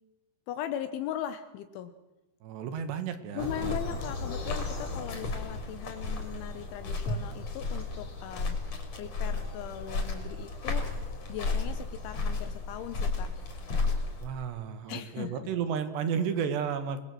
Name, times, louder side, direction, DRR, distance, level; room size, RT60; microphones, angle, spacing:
voice 1, 0.5-1.9 3.3-8.6 9.0-10.8 11.3-13.3 14.9-15.5, left 10 dB, 80° left, 10 dB, 3.4 m, -39 dB
voice 2, 2.4-4.0 14.2-17.0, right 7 dB, 70° right, 10 dB, 3.5 m, -33 dB
sound 1, 3.4-14.3, left 3 dB, 35° left, 4.6 m, -33 dB
28.5 x 21.0 x 7.7 m, 1.0 s
omnidirectional pair, 5.5 m